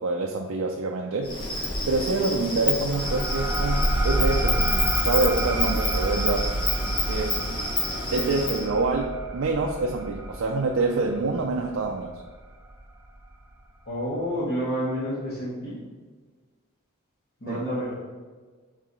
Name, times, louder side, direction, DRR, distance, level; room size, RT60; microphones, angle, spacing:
voice 1, 0.0-1.4 1.9-6.5 7.0-7.5 8.1-12.2 17.5-17.7, right 3 dB, 65° right, 2 dB, 0.4 m, -26 dB
Insect, 1.2-8.6, left 2 dB, 25° left, 0.9 m, -29 dB
sound 1, 2.9-12.1, right 1 dB, 15° right, 0.5 m, -28 dB
voice 2, 13.9-15.8 17.4-18.0, equal, 50° left, -9 dB, 1.5 m, -29 dB
8.0 x 4.0 x 3.1 m, 1.5 s
head